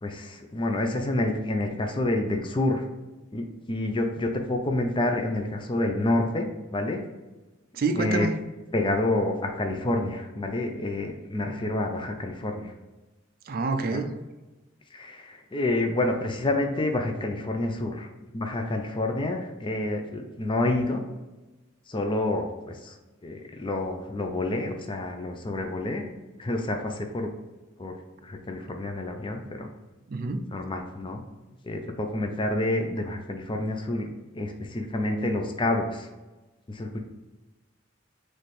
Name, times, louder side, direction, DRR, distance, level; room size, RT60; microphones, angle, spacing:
voice 1, 0.0-2.8 3.3-7.0 7.9-8.3 8.7-12.7 13.9-14.0 14.9-21.0 21.9-23.0 23.2-26.1 26.4-27.3 27.8-27.9 28.2-29.7 30.5-31.2 31.6-36.1 36.7-37.0, left 2 dB, 25° left, 4 dB, 0.5 m, -28 dB
voice 2, 7.7-8.4 13.5-14.1 30.1-30.4, right 3 dB, 50° right, 7 dB, 0.4 m, -27 dB
4.2 x 3.2 x 3.2 m, 1.1 s
head